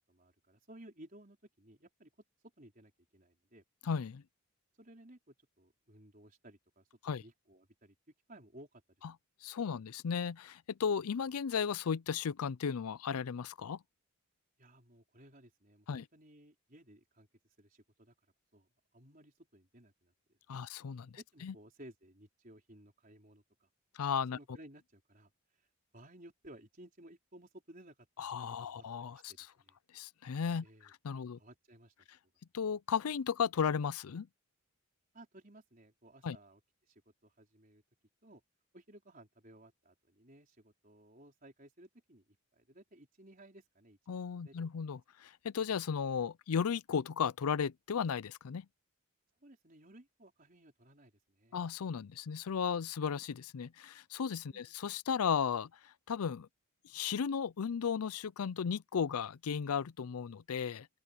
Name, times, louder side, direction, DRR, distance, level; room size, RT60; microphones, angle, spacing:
voice 1, 0.1-2.1 2.6-3.6 4.8-6.9 7.1-7.9 8.3-8.8 14.6-17.3 17.6-18.1 18.5-18.7 18.9-20.7 21.2-23.7 24.3-25.7 25.9-28.3 28.6-29.8 30.6-30.9 31.3-32.1 35.1-37.8 38.2-38.4 38.7-42.2 42.5-44.5 49.4-51.6 54.5-54.8, right 1 dB, 40° right, 4.8 m, -58 dB
voice 2, 3.8-4.2 7.0-7.2 9.4-13.8 15.9-16.0 20.5-21.2 21.4-21.5 23.9-24.4 28.2-29.5 29.9-31.4 32.5-34.3 36.2-36.4 44.1-48.7 51.5-56.5 56.8-60.9, left 6 dB, 85° left, 0.5 m, -35 dB
open air
head